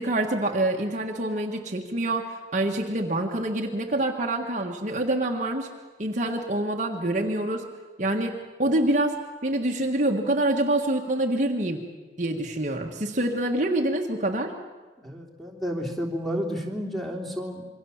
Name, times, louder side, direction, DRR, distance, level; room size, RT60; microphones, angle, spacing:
voice 1, 0.0-5.7 6.0-7.6 8.0-11.8 12.2-14.5, right 1 dB, 40° right, 2 dB, 1.5 m, -26 dB
voice 2, 15.0-17.7, equal, ahead, 1 dB, 3.2 m, -31 dB
26.5 x 23.5 x 7.2 m, 1.3 s
head